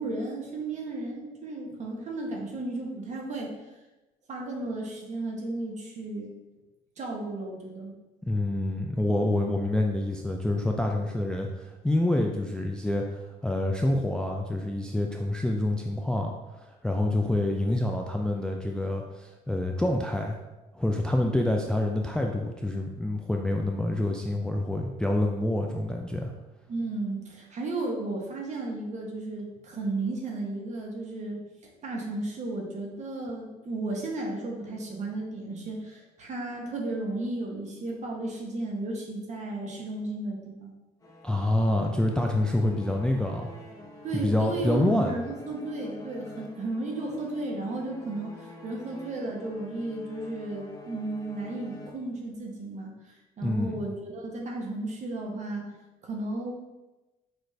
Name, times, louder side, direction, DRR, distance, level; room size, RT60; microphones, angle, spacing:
voice 1, 0.0-3.5 4.3-6.3 7.0-7.9 26.7-31.4 31.8-40.7 44.0-55.7 56.0-56.5, right 2 dB, 45° right, 0 dB, 1.1 m, -34 dB
voice 2, 8.3-20.4 20.7-26.3 41.2-43.5 44.2-45.1 53.4-53.7, left 1 dB, 5° left, 2 dB, 0.3 m, -27 dB
sound 1, 41.0-52.5, left 2 dB, 20° left, 0.8 m, -46 dB
6.1 x 2.5 x 3.2 m, 1.1 s
cardioid pair, 110°, 17 cm